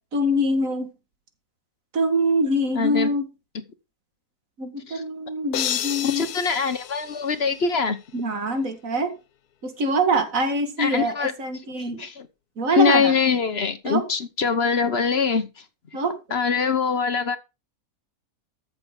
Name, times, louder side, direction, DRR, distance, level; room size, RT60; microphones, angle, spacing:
voice 1, 0.1-0.9 1.9-3.3 4.6-6.3 8.1-9.1 9.6-12.0 12.6-13.1 13.9-14.0 15.9-16.2, right 1 dB, 60° right, 2.4 m, -24 dB
voice 2, 2.7-3.1 4.9-5.0 6.0-8.0 10.8-11.3 11.9-12.3 12.7-15.5 16.3-17.4, left 6 dB, 45° left, 1.3 m, -23 dB
sound 1, 5.5-7.9, left 11 dB, 85° left, 1.3 m, -31 dB
14.0 x 7.0 x 3.9 m
omnidirectional pair, 1.6 m